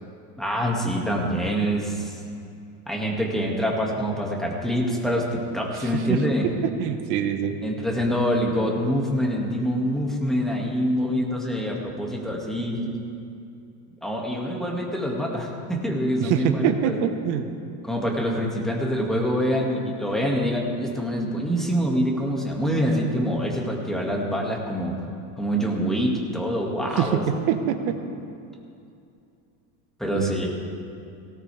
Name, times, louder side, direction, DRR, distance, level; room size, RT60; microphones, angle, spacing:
voice 1, 0.4-2.2 2.9-6.5 7.6-12.9 14.0-17.0 17.8-25.0 25.4-27.2 30.0-30.5, equal, ahead, -2 dB, 2.1 m, -25 dB
voice 2, 5.7-6.2 6.6-7.5 16.2-17.5 27.0-28.0 30.1-30.3, right 9 dB, 60° right, 7 dB, 1.4 m, -25 dB
18.0 x 17.5 x 3.5 m, 2.5 s
supercardioid pair, 145°, 45 cm